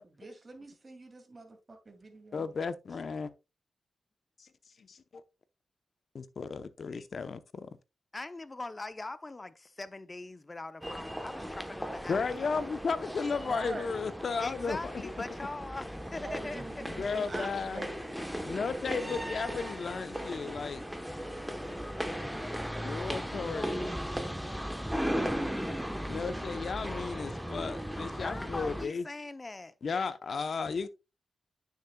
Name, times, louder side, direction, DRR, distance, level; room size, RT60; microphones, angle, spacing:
voice 1, 0.0-2.5 13.3-14.1 16.1-18.4, right 2 dB, 35° right, 2.4 m, -45 dB
voice 2, 2.3-3.3 4.4-4.5 4.8-5.2 6.1-7.7 12.1-15.1 16.8-17.9 18.4-20.8 22.8-23.9 26.1-29.1 29.8-30.9, left 5 dB, 60° left, 0.8 m, -34 dB
voice 3, 8.1-12.6 14.4-16.6 22.5-23.2 28.2-29.7, left 2 dB, 30° left, 0.7 m, -42 dB
sound 1, 10.8-28.8, equal, ahead, 1.0 m, -37 dB
9.4 x 6.6 x 2.3 m
cardioid pair, 70°, 0 cm